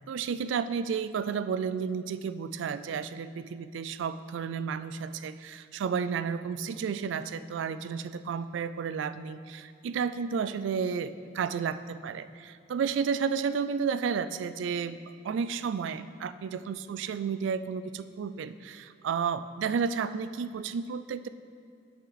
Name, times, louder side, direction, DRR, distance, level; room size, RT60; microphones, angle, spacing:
voice 1, 0.1-15.0 15.2-21.3, right 6 dB, 70° right, 13 dB, 0.3 m, -32 dB
8.9 x 5.7 x 4.0 m, 2.3 s
head